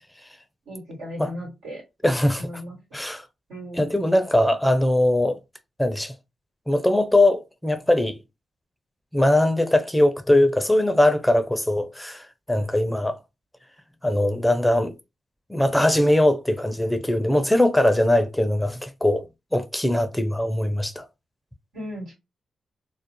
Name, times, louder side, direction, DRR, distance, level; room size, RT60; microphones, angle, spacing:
voice 1, 0.7-1.8 2.4-2.7 3.5-3.9 21.7-22.1, equal, 90° right, 1.4 m, -36 dB
voice 2, 2.0-2.5 2.9-3.3 3.7-5.4 5.8-6.1 6.7-8.2 9.1-13.2 14.0-14.9 15.5-19.3 19.5-21.1, left 1 dB, 10° left, 0.5 m, -21 dB
2.4 x 2.0 x 2.9 m
supercardioid pair, 50°, 0 cm